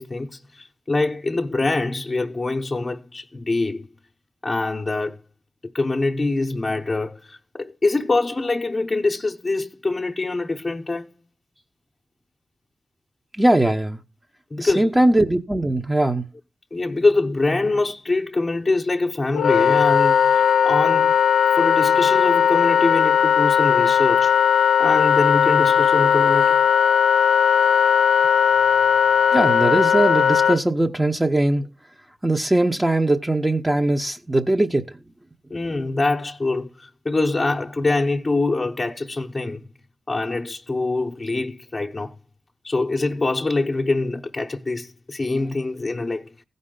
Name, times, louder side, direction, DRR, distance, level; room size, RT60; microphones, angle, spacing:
voice 1, 0.0-3.9 4.4-5.2 5.7-11.1 14.5-14.9 16.7-21.1 21.5-24.3 24.8-26.6 35.5-39.6 40.1-42.2 42.6-46.3, left 3 dB, 35° left, 0.8 m, -24 dB
voice 2, 13.4-14.0 14.6-16.2 29.3-31.7 32.2-34.8, right 1 dB, 15° right, 0.9 m, -20 dB
Wind instrument woodwind instrument, 19.3-30.6, left 8 dB, 90° left, 0.5 m, -17 dB
15.5 x 5.4 x 3.8 m
cardioid pair, 55°, 0 cm